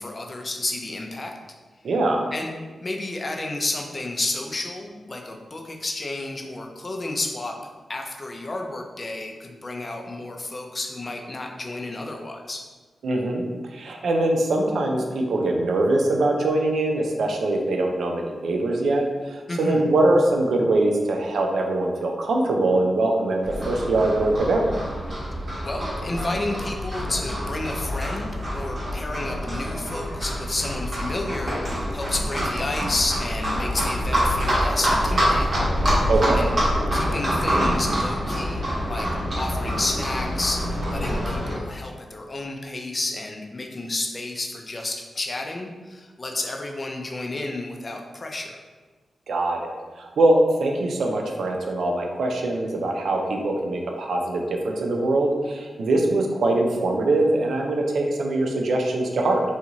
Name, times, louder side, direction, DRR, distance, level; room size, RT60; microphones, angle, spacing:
voice 1, 0.0-1.3 2.3-2.5 2.8-7.6 7.9-12.6 19.5-19.8 25.6-35.7 36.3-36.5 36.9-39.1 39.3-48.6, left 2 dB, 45° left, 2 dB, 0.4 m, -31 dB
voice 2, 1.8-2.3 13.0-13.4 13.7-23.4 23.7-24.7 36.1-36.5 49.3-59.4, right 2 dB, 80° right, 2 dB, 0.4 m, -22 dB
Livestock farm animals working animals, 23.4-41.5, equal, 50° right, 1.1 m, -26 dB
2.5 x 2.4 x 2.8 m, 1.4 s
cardioid pair, 45°, 0 cm